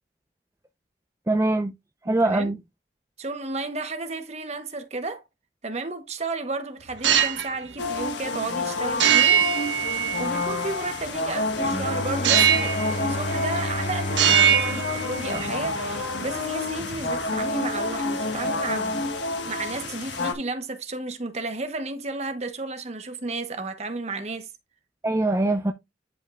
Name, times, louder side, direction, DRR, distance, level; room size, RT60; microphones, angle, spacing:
voice 1, 1.3-1.7 2.1-2.6 25.0-25.7, right 2 dB, 15° right, 0.5 m, -22 dB
voice 2, 2.0-2.5 3.2-5.2 5.6-9.4 10.2-19.1 19.5-24.5, right 3 dB, 35° right, 1.1 m, -33 dB
sound 1, 6.9-7.5 9.0-10.5 12.2-12.9 13.2-13.8 14.1-15.5, right 9 dB, 85° right, 1.2 m, -21 dB
sound 2, 7.8-20.3, left 2 dB, 80° left, 1.5 m, -29 dB
Bowed string instrument, 11.6-17.3, left 1 dB, 50° left, 3.3 m, -33 dB
10.5 x 5.3 x 2.4 m
head